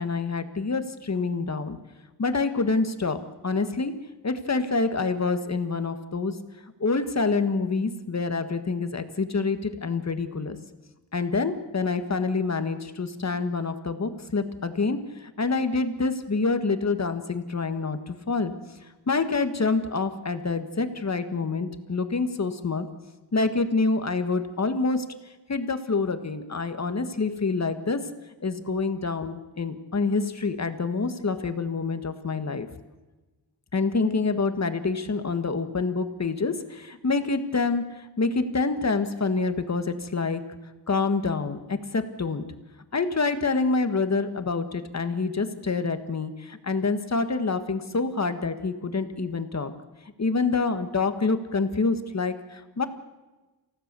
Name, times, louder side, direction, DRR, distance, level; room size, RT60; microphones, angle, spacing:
voice 1, 0.0-1.8 2.2-3.9 4.2-6.4 6.8-10.6 11.1-18.5 19.1-22.9 23.3-25.0 25.5-28.0 28.4-32.7 33.7-40.4 40.9-42.4 42.9-49.7 50.2-52.9, left 4 dB, 40° left, 9 dB, 1.6 m, -27 dB
28.5 x 16.5 x 6.9 m, 1.2 s
wide cardioid pair, 150°, 41 cm